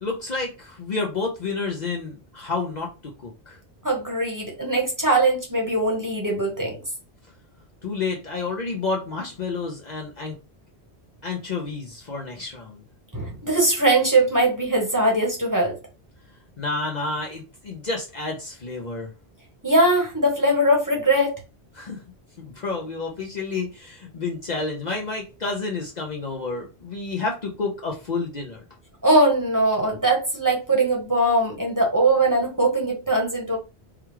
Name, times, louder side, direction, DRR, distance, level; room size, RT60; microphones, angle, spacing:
voice 1, 0.0-3.6 7.8-10.3 11.2-12.8 16.6-19.1 21.8-22.0 22.4-28.6, left 3 dB, 45° left, 0 dB, 0.7 m, -30 dB
voice 2, 3.8-6.8 13.1-15.7 19.6-21.3 29.0-33.6, right 1 dB, 20° right, -2 dB, 1.1 m, -21 dB
4.8 x 2.3 x 3.0 m, 0.30 s
omnidirectional pair, 1.1 m